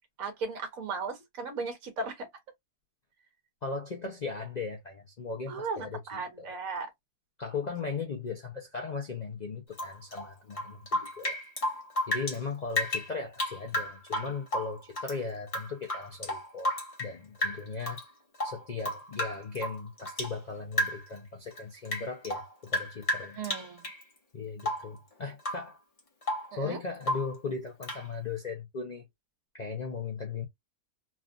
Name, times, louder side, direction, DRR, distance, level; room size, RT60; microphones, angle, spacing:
voice 1, 0.2-2.3 5.5-6.9 23.4-23.8 26.5-26.8, right 4 dB, 65° right, 1.5 m, -36 dB
voice 2, 3.6-6.6 7.4-11.7 12.1-18.0 18.4-23.4 24.3-25.8 26.5-29.1 29.5-30.5, left 4 dB, 70° left, 0.4 m, -37 dB
Rain / Drip, 9.7-12.4 12.7-15.2 15.5-17.1 17.4-18.0 18.3-20.4 20.7-21.2 21.5-24.0 24.6-25.0 25.4-25.7 26.0-26.5 27.0-27.4 27.8-28.1, left 1 dB, 25° left, 0.9 m, -33 dB
3.4 x 2.4 x 2.3 m
omnidirectional pair, 1.7 m